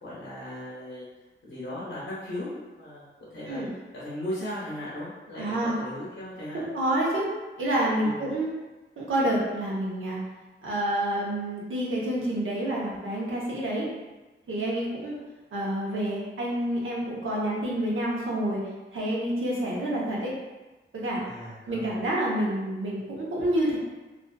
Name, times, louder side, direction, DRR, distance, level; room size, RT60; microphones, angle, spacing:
voice 1, 0.0-1.1 1.4-6.7 8.0-8.2 21.2-22.0, left 1 dB, 75° left, -9 dB, 0.7 m, -37 dB
voice 2, 5.4-5.8 6.5-7.3 7.6-8.5 9.0-10.2 10.6-13.9 14.5-15.1 15.5-18.6 18.9-20.3 20.9-21.2 21.7-23.8, right 1 dB, 85° right, -5 dB, 0.7 m, -28 dB
2.4 x 2.4 x 2.2 m, 1.2 s
wide cardioid pair, 80°, 20 cm